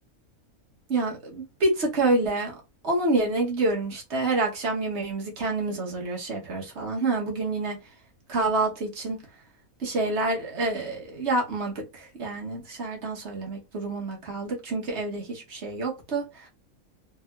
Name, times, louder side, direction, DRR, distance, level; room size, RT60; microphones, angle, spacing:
voice 1, 0.9-7.8 8.3-9.2 9.8-16.5, right 2 dB, 55° right, 1.2 m, -28 dB
3.4 x 2.7 x 2.3 m
omnidirectional pair, 1.5 m